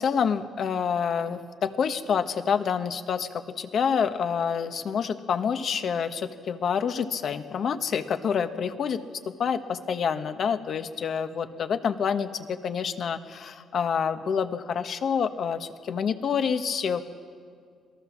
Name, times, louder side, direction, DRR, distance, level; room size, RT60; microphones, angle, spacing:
voice 1, 0.0-17.0, left 7 dB, 60° left, 9 dB, 1.3 m, -27 dB
26.5 x 18.5 x 7.3 m, 2.1 s
cardioid pair, 90°, 0 cm